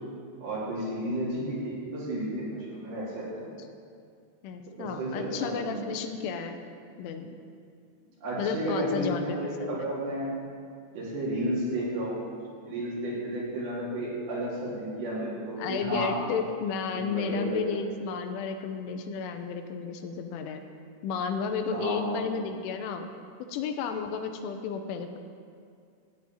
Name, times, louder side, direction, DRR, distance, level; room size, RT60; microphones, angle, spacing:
voice 1, 0.4-3.3 4.8-5.8 8.2-10.3 10.9-12.2 12.7-16.1 16.9-17.8 21.7-22.2, right 1 dB, 60° right, -7 dB, 5.5 m, -32 dB
voice 2, 4.4-6.6 7.0-7.4 8.4-9.9 15.6-20.6 21.0-23.1 23.5-25.2, left 6 dB, 85° left, 6 dB, 3.3 m, -32 dB
16.0 x 5.5 x 9.2 m, 2.3 s
omnidirectional pair, 5.6 m